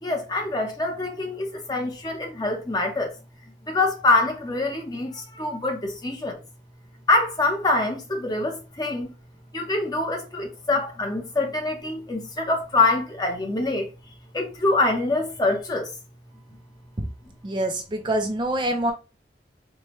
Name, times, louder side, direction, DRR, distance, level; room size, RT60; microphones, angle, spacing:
voice 1, 0.0-3.1 3.7-6.4 7.1-9.1 9.5-13.9 14.3-15.9, left 2 dB, 25° left, 0.8 m, -25 dB
voice 2, 17.4-18.9, right 1 dB, 25° right, 0.5 m, -25 dB
4.6 x 2.2 x 3.0 m
head